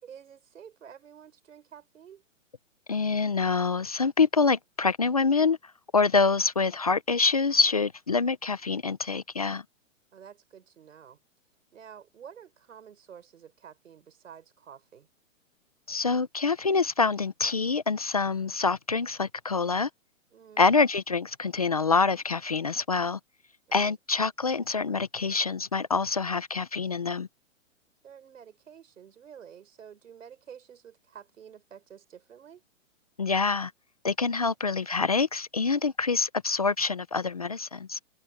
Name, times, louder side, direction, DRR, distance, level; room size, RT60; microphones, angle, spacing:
voice 1, 0.0-2.2 10.1-11.2 11.7-15.1 20.3-20.7 23.7-23.9 28.0-32.6, right 8 dB, 75° right, 6.0 m, -50 dB
voice 2, 2.9-5.6 5.9-9.6 15.9-19.9 20.6-23.2 23.7-27.3 33.2-33.7 34.0-38.0, left 4 dB, 30° left, 0.4 m, -26 dB
hypercardioid pair, 170°, 39 cm